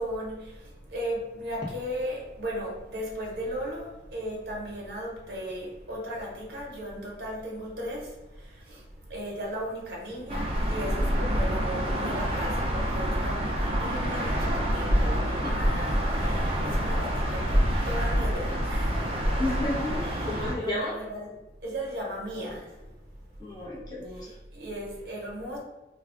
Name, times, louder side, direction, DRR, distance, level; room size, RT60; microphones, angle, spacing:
voice 1, 0.0-8.8 9.1-19.1 20.0-21.4 21.6-22.8 24.2-25.6, equal, 75° right, -2 dB, 0.8 m, -36 dB
sound 1, 10.3-20.6, equal, 30° right, 0.4 m, -27 dB
voice 2, 19.4-20.0 20.3-20.9 23.4-24.3, left 1 dB, 25° left, -5 dB, 0.7 m, -32 dB
2.4 x 2.2 x 3.6 m, 1.1 s
head